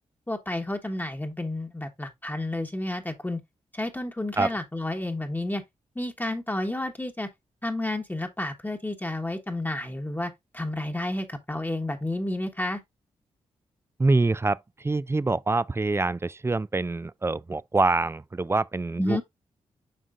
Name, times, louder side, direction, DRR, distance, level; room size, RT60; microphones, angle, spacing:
voice 1, 0.3-3.4 3.7-5.6 5.9-7.3 7.6-12.8 19.0-19.2, left 1 dB, 15° left, 1.2 m, -31 dB
voice 2, 14.0-19.2, right 3 dB, 20° right, 0.4 m, -25 dB
7.7 x 5.0 x 2.5 m
supercardioid pair, 40°, 13 cm